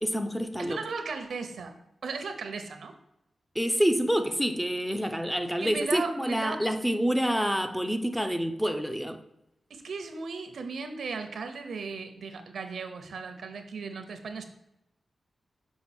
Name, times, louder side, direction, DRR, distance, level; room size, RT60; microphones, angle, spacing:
voice 1, 0.0-0.8 3.6-9.2, equal, ahead, 0.4 m, -27 dB
voice 2, 0.6-1.8 2.0-2.9 5.6-6.6 9.7-14.4, right 4 dB, 80° right, 0.8 m, -36 dB
5.9 x 4.7 x 4.3 m
wide cardioid pair, 125°, 0 cm